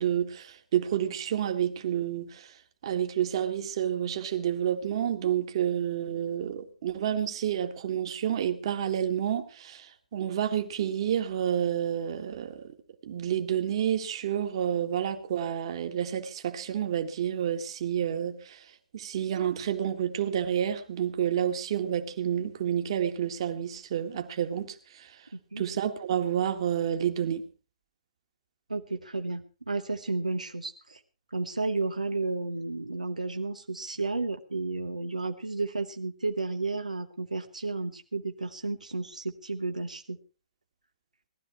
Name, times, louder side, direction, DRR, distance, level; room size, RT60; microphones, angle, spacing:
voice 1, 0.0-2.5 2.8-12.8 13.0-18.7 18.9-25.2 25.6-27.4, right 9 dB, 45° right, 7 dB, 1.9 m, -29 dB
voice 2, 25.3-25.6 28.7-31.0 31.3-40.2, right 3 dB, 80° right, 5 dB, 1.1 m, -32 dB
18.5 x 12.5 x 4.5 m, 0.35 s
figure-of-eight pair, 125°, 4 cm